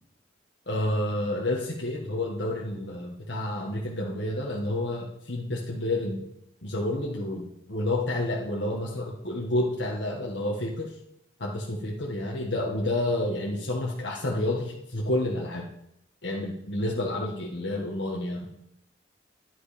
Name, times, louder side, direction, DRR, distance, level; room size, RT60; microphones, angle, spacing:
voice 1, 0.7-6.2 6.6-10.9 11.4-15.7 16.2-18.5, left 1 dB, 70° left, -3 dB, 1.8 m, -29 dB
11.5 x 11.0 x 5.2 m, 0.80 s
head